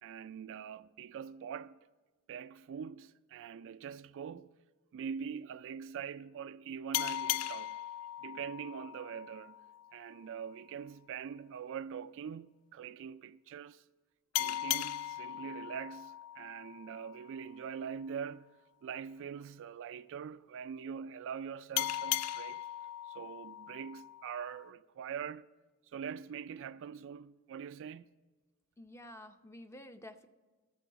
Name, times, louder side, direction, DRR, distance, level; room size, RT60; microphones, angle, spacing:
voice 1, 0.0-1.8 2.3-4.5 4.9-7.8 8.2-9.6 9.9-13.8 14.4-18.6 18.8-22.6 23.1-25.4 25.9-28.1, right 7 dB, 60° right, 0.3 m, -43 dB
sound 1, 6.9-10.2 14.3-17.6 21.8-24.7, left 13 dB, 75° left, 0.4 m, -38 dB
voice 2, 28.8-30.3, left 1 dB, 10° left, 0.6 m, -50 dB
13.0 x 7.1 x 4.6 m
head